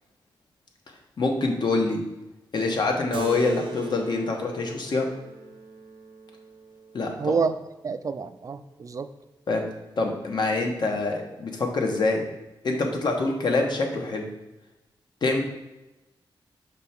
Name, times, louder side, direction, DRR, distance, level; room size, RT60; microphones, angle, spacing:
voice 1, 1.2-2.0 2.5-5.1 6.9-7.4 9.5-9.6 10.0-12.2 12.6-14.3 15.2-15.4, left 3 dB, 60° left, 2 dB, 1.1 m, -25 dB
Keyboard (musical), 3.1-8.0, right 4 dB, 85° right, 0.7 m, -40 dB
voice 2, 7.2-7.5 7.8-9.1, right 5 dB, 40° right, 11 dB, 0.3 m, -27 dB
5.9 x 3.3 x 5.8 m, 0.99 s
wide cardioid pair, 125°, 8 cm